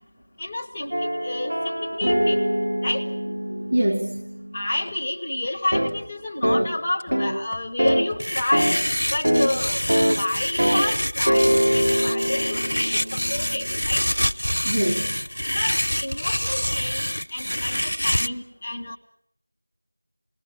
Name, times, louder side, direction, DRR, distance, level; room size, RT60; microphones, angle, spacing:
voice 1, 0.4-2.4 2.8-3.1 4.5-8.7 9.1-9.8 10.2-14.0 15.5-17.0 17.3-19.0, left 1 dB, 10° left, 0 dB, 0.9 m, -29 dB
sound 1, 0.9-4.9 5.7-5.9 6.4-6.7 7.1-7.4 7.8-8.1 8.5-8.8 9.2-9.5 9.9-10.2 10.6-10.9 11.3-13.7, equal, 65° right, 3.4 m, -23 dB
voice 2, 3.3-4.2 14.6-15.2 15.5-15.6, right 1 dB, 20° right, -1 dB, 1.6 m, -25 dB
sound 2, 8.2-18.3, equal, 75° left, 1.0 m, -26 dB
28.0 x 20.5 x 7.5 m, 0.69 s
figure-of-eight pair, 175°, 0 cm